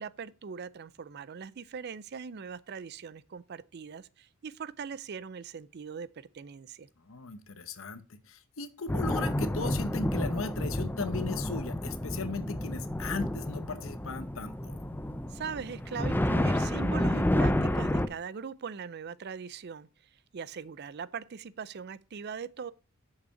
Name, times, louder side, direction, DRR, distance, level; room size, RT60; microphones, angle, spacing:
voice 1, 0.0-6.9 15.3-19.9 20.3-22.7, right 6 dB, 50° right, 0.4 m, -41 dB
voice 2, 7.1-14.8, left 4 dB, 70° left, 0.9 m, -37 dB
sound 1, 8.9-18.1, left 1 dB, 10° left, 0.5 m, -30 dB
6.8 x 5.5 x 5.7 m
head